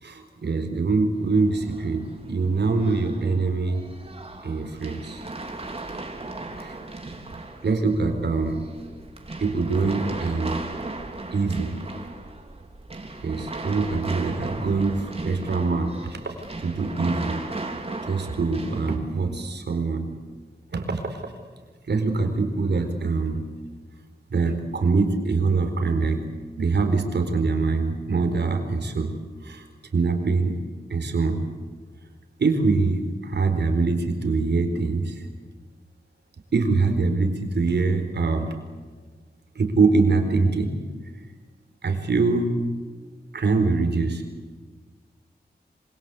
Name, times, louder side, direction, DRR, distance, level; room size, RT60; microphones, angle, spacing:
voice 1, 0.0-3.8 4.4-5.3 6.6-6.8 7.6-8.7 9.4-10.6 11.3-11.8 13.2-17.4 18.1-20.1 20.7-21.3 21.9-23.4 24.3-26.3 26.6-29.1 29.4-29.7 29.9-30.5 30.9-31.4 32.4-35.3 36.5-38.5 39.6-40.8 41.8-42.6 43.3-44.2, right 3 dB, 85° right, 6 dB, 4.3 m, -24 dB
sound 1, 1.2-19.0, right 2 dB, 35° right, 3.7 m, -37 dB
26.0 x 26.0 x 8.4 m, 1.5 s
wide cardioid pair, 115°, 17 cm